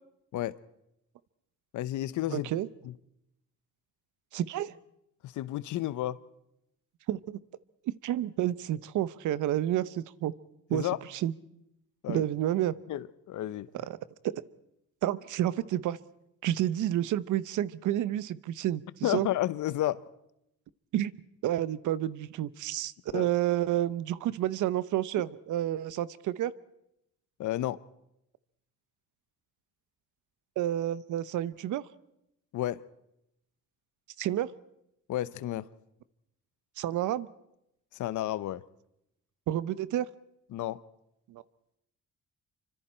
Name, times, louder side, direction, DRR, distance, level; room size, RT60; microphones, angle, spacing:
voice 1, 1.7-2.5 2.8-2.9 5.2-6.2 10.7-11.0 12.0-12.2 12.9-13.7 19.0-20.0 23.1-23.3 27.4-27.8 32.5-32.8 35.1-35.7 37.9-38.6 40.5-40.8, left 14 dB, 75° left, 0.8 m, -31 dB
voice 2, 2.3-2.7 4.3-4.7 7.1-7.4 7.9-10.3 10.7-10.9 11.2-11.3 12.1-12.7 13.7-14.0 15.0-16.0 16.4-19.3 20.9-21.1 21.4-26.5 30.6-31.8 34.2-34.5 36.8-37.3 39.5-40.1 41.3-41.4, right 12 dB, 80° right, 0.8 m, -30 dB
26.5 x 24.5 x 4.4 m
cardioid pair, 90°, 30 cm